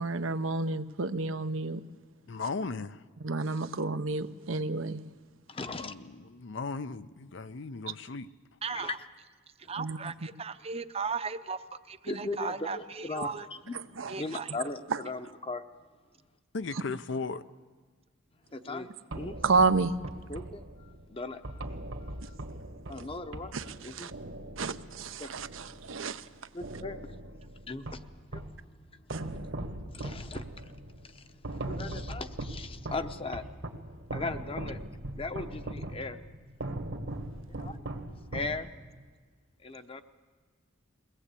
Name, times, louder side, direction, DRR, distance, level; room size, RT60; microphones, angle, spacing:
voice 1, 0.0-1.8 3.2-5.0 9.8-10.0 14.0-14.1 14.9-15.0 19.4-19.9 23.5-24.1 24.6-26.3 29.1-29.2, right 3 dB, 85° right, 10 dB, 0.8 m, -30 dB
voice 2, 2.3-3.0 5.7-8.3 16.5-17.4, left 4 dB, 65° left, 13 dB, 0.6 m, -36 dB
voice 3, 5.5-5.9 8.7-9.0 9.6-9.7 12.1-13.3 13.7-15.6 18.5-19.4 20.3-21.7 22.0-22.4 22.9-23.6 23.8-24.1 25.2-25.3 26.5-27.4 27.7-28.0 28.3-28.5 28.9-29.0 29.3-29.4 29.9-33.4 34.1-34.8 35.1-36.2 37.5-37.8 38.3-38.7 39.6-40.0, left 3 dB, 30° left, 9 dB, 0.8 m, -38 dB
voice 4, 8.6-9.0 9.7-13.5 14.1-14.5, right 5 dB, 30° right, 11 dB, 0.7 m, -36 dB
sound 1, 19.1-26.2 26.6-28.6 29.1-39.0, right 1 dB, 70° right, 1.7 m, -40 dB
22.5 x 18.0 x 8.3 m, 1.5 s
head